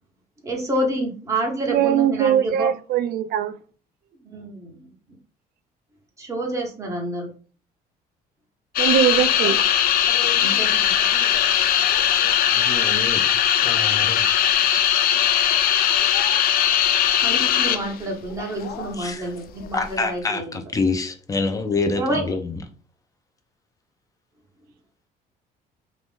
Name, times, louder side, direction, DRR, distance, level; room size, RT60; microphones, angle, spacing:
voice 1, 0.4-2.7 4.2-4.9 6.2-7.3 10.4-10.7 17.2-20.6 21.9-22.2, right 1 dB, 20° right, 1.2 m, -28 dB
voice 2, 1.7-3.5 8.8-9.6, right 10 dB, 70° right, 0.4 m, -21 dB
sound 1, 8.8-18.0 18.3-18.9 19.6-19.9, left 10 dB, 60° left, 0.4 m, -20 dB
voice 3, 12.5-13.2 13.6-14.3 19.0-19.3 19.7-22.6, left 3 dB, 20° left, 0.6 m, -26 dB
2.9 x 2.6 x 3.5 m
cardioid pair, 110°, 17 cm